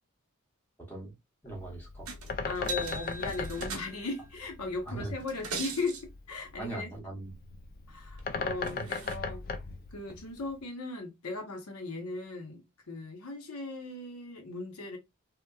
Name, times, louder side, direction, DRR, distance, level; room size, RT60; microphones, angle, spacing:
voice 1, 0.8-1.2 1.4-2.1 4.9-5.1 6.6-7.4 8.7-8.9, right 2 dB, 10° left, 0.8 m, -40 dB
Bird, 1.5-10.6, left 4 dB, 40° left, 0.3 m, -38 dB
sound 1, 2.1-2.3 2.6-4.2 5.2-6.0 8.2-8.3 8.6-9.2 10.1-10.2, right 3 dB, 75° right, 0.8 m, -39 dB
voice 2, 2.4-6.9 7.9-9.5 9.9-15.0, left 3 dB, 75° left, 0.8 m, -37 dB
2.9 x 2.1 x 2.2 m
head